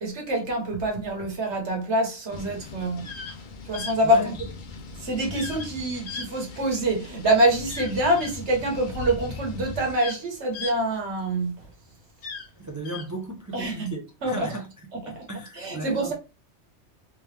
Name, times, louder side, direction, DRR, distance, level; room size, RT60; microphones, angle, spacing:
voice 1, 0.0-3.1 3.6-4.3 4.9-11.6 13.5-13.9 14.2-14.6 14.9-15.2 15.5-16.1, right 1 dB, 75° right, 1.4 m, -25 dB
sound 1, 2.3-9.9, left 3 dB, 50° left, 0.7 m, -39 dB
sound 2, 2.9-3.4 3.7-4.0 5.4-5.7 6.1-6.9 7.7-8.4 9.3-9.4 9.7-11.5 12.1-13.1, left 5 dB, 70° left, 1.1 m, -38 dB
voice 2, 12.6-14.7 15.1-16.1, right 1 dB, 30° right, 0.3 m, -36 dB
3.5 x 2.9 x 3.2 m
omnidirectional pair, 1.2 m